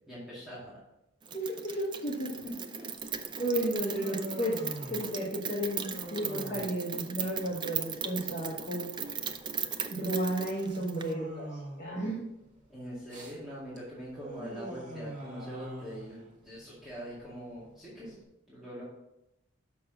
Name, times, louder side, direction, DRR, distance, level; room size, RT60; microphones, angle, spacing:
voice 1, 0.1-0.8 2.4-2.9 12.7-18.2 18.5-18.8, equal, ahead, -9 dB, 2.0 m, -43 dB
voice 2, 1.3-2.4 3.4-5.8 6.1-8.9 9.9-12.3, right 1 dB, 35° left, -4 dB, 1.4 m, -33 dB
Rain, 1.3-11.1, right 7 dB, 20° right, 0.3 m, -38 dB
Human voice, 3.0-18.2, right 1 dB, 40° right, 1.7 m, -46 dB
6.1 x 5.7 x 5.9 m, 0.88 s
head